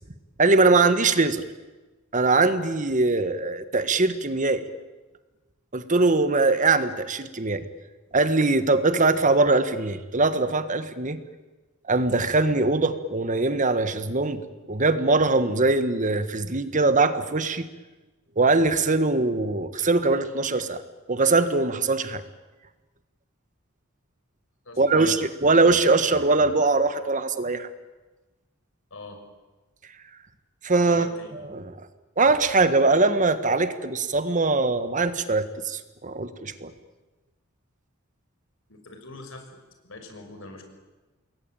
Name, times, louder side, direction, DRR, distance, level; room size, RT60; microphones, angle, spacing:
voice 1, 0.4-1.4 2.1-4.7 5.7-7.6 8.1-11.2 11.9-14.4 14.7-17.7 18.4-20.8 21.1-22.2 24.8-27.7 30.6-31.1 31.3-31.7 32.2-36.7, right 3 dB, 40° right, 11 dB, 1.5 m, -22 dB
voice 2, 24.7-25.1 28.9-29.2 30.9-31.5 38.7-39.5 39.8-40.6, left 2 dB, 70° left, 5 dB, 5.8 m, -43 dB
27.5 x 22.0 x 9.0 m, 1.2 s
head